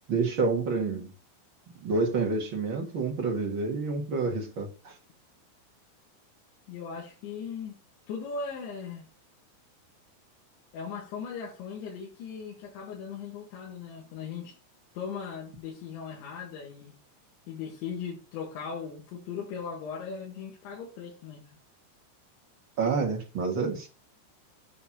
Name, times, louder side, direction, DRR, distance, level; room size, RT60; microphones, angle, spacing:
voice 1, 0.1-1.1 1.8-4.9 22.8-23.9, right 4 dB, 80° right, 1.1 m, -28 dB
voice 2, 6.7-7.8 8.1-9.1 10.7-14.6 14.9-16.9 17.5-21.6, left 6 dB, 80° left, 4.2 m, -38 dB
9.3 x 4.3 x 6.0 m
omnidirectional pair, 5.2 m